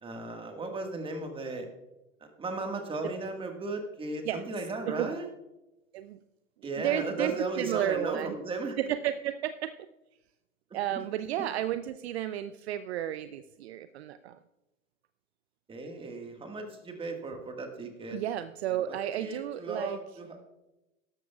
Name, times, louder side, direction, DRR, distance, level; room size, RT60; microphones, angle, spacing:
voice 1, 0.0-1.7 2.4-5.3 6.6-8.8 10.9-11.0 15.7-18.2 18.9-20.4, right 3 dB, 15° right, 4 dB, 1.6 m, -36 dB
voice 2, 6.8-8.3 8.8-9.9 10.7-14.4 18.1-20.0, right 11 dB, 50° right, 12 dB, 0.5 m, -32 dB
17.0 x 13.0 x 2.4 m, 0.99 s
figure-of-eight pair, 105°, 40 cm